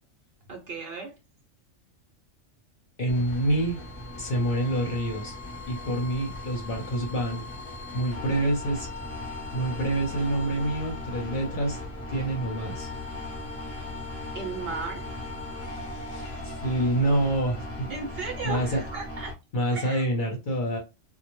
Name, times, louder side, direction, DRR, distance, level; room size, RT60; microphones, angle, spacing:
voice 1, 0.5-1.2 14.3-15.1 17.9-19.3 19.7-20.0, right 4 dB, 60° right, 3 dB, 0.8 m, -35 dB
voice 2, 3.0-3.8 4.1-5.3 5.7-7.4 7.9-8.9 9.5-11.8 12.1-12.9 16.1-17.9 18.4-18.8 19.5-20.8, right 1 dB, 50° left, 0 dB, 0.8 m, -27 dB
sound 1, 3.1-19.3, left 2 dB, 15° left, 0.5 m, -38 dB
2.1 x 2.1 x 3.0 m, 0.26 s
omnidirectional pair, 1.3 m